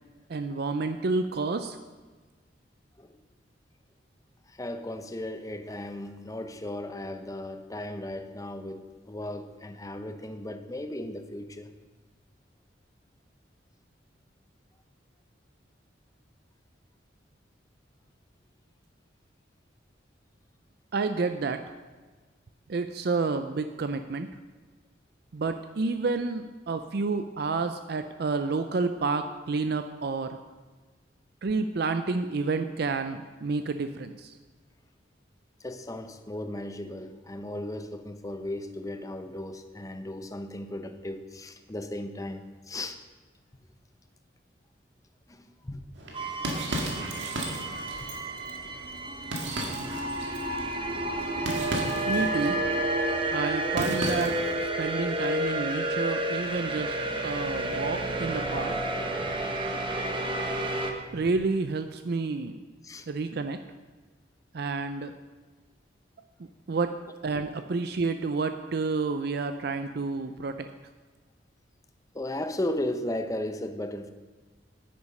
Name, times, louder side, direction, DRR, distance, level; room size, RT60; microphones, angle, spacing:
voice 1, 0.3-1.8 20.9-21.6 22.7-24.3 25.3-30.4 31.4-34.3 52.1-52.6 53.3-57.0 57.2-58.8 61.1-62.6 63.1-63.6 64.5-65.1 66.7-66.9 67.2-70.7, right 3 dB, 60° right, 0.5 m, -29 dB
voice 2, 4.5-11.7 35.6-43.0 45.3-45.8 59.2-59.3 62.8-63.1 72.1-74.1, left 1 dB, 20° left, 0.7 m, -36 dB
sound 1, 46.0-54.6, right 1 dB, 75° right, 1.9 m, -36 dB
sound 2, 46.1-60.9, right 1 dB, 25° right, 1.1 m, -30 dB
9.7 x 9.6 x 5.4 m
head